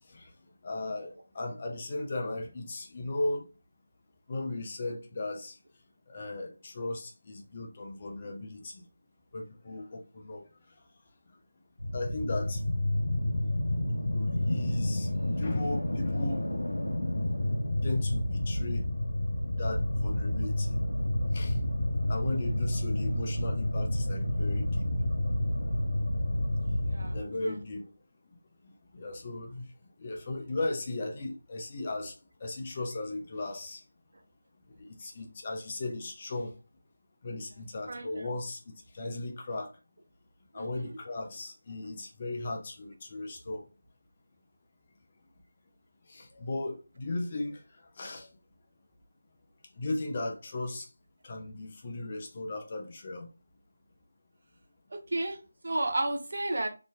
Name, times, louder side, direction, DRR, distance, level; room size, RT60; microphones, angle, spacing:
voice 1, 0.0-3.5 4.3-5.6 6.1-8.9 9.3-10.9 11.3-11.4 11.9-12.8 14.1-16.6 17.8-18.9 19.5-20.8 21.3-21.6 22.1-24.9 27.1-27.9 28.6-33.8 34.6-36.5 37.2-39.8 40.5-43.7 46.0-48.4 49.7-50.9 51.2-53.3, left 2 dB, 30° left, 0.6 m, -37 dB
sound 1, 11.8-27.2, left 1 dB, 80° left, 0.6 m, -29 dB
voice 2, 26.8-27.2 27.4-27.6 37.9-38.3 40.5-41.0 54.9-56.7, right 2 dB, 50° right, 0.6 m, -33 dB
3.0 x 2.6 x 2.2 m
figure-of-eight pair, 160°, 0 cm